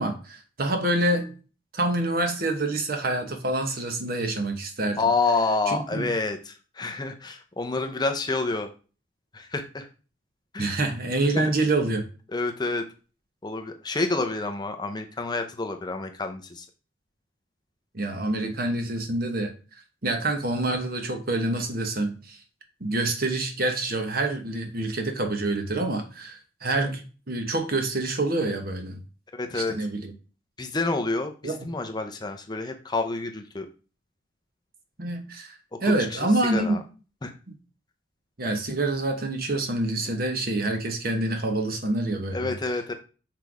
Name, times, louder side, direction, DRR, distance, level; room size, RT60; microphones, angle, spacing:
voice 1, 0.0-1.3 1.7-5.1 5.7-6.1 10.6-12.1 17.9-19.5 20.0-22.4 22.8-29.0 29.5-30.1 31.4-31.7 35.0-35.6 35.8-36.8 38.4-42.5, right 2 dB, 50° right, 6 dB, 1.1 m, -27 dB
voice 2, 5.0-8.7 9.3-9.9 10.5-10.7 11.4-11.5 12.3-12.8 13.4-16.7 29.3-29.7 30.6-33.7 35.9-36.8 37.2-37.3 42.3-42.9, left 3 dB, 20° left, 6 dB, 0.6 m, -28 dB
6.0 x 3.4 x 4.8 m, 0.35 s
head